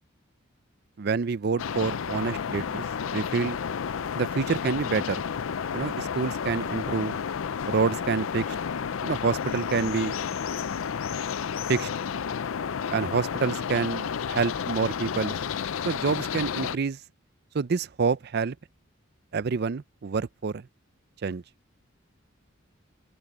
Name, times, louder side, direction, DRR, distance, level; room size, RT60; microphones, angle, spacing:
voice 1, 1.0-2.8 3.1-3.6 4.2-5.2 5.7-7.2 7.7-8.6 9.0-10.1 11.7-11.9 12.9-15.4 15.8-17.0 17.5-18.6 19.3-20.7 21.2-21.4, right 5 dB, 55° right, 0.5 m, -27 dB
sound 1, 1.6-16.8, left 7 dB, 90° left, 0.5 m, -31 dB
open air
head